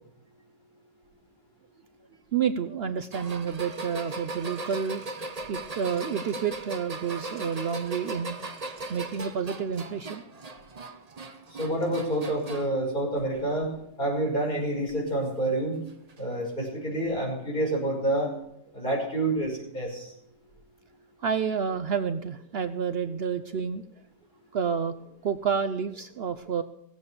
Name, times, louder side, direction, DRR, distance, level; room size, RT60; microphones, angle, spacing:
voice 1, 2.3-5.0 5.5-8.4 8.9-10.3 21.2-23.8 24.5-25.0 25.2-26.6, right 7 dB, 85° right, 11 dB, 0.5 m, -29 dB
sound 1, 3.1-12.8 13.2-13.8 14.9-15.0 16.1-16.2, right 3 dB, 30° right, 0.8 m, -38 dB
voice 2, 11.6-13.7 14.0-15.8 16.2-18.3 18.7-20.1, right 1 dB, 25° left, -2 dB, 5.9 m, -28 dB
17.0 x 8.3 x 7.0 m, 0.75 s
omnidirectional pair, 1.9 m